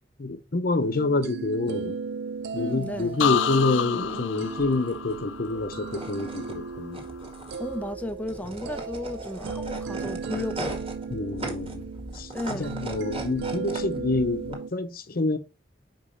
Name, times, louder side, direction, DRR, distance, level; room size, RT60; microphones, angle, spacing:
voice 1, 0.2-2.0 2.5-7.0 11.1-11.9 12.1-15.4, left 2 dB, 55° left, 0.7 m, -27 dB
sound 1, 0.8-14.7, right 5 dB, 65° right, 0.3 m, -36 dB
voice 2, 2.6-3.2 7.6-10.9 12.3-12.8, left 1 dB, 10° left, 0.5 m, -34 dB
sound 2, 2.6-14.5, right 2 dB, 30° right, 1.9 m, -39 dB
sound 3, 3.2-7.0 7.4-7.9, left 10 dB, 85° left, 0.3 m, -30 dB
5.4 x 5.1 x 5.6 m
head